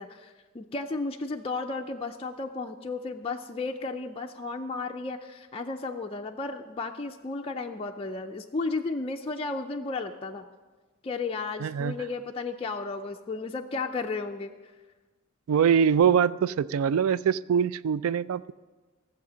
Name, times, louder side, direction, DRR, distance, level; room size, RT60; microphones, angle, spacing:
voice 1, 0.0-10.4 11.0-14.5, left 3 dB, 25° left, 2 dB, 0.4 m, -33 dB
voice 2, 11.6-12.0 15.5-18.5, right 7 dB, 80° right, 19 dB, 0.3 m, -23 dB
14.5 x 7.2 x 6.1 m, 1.3 s
head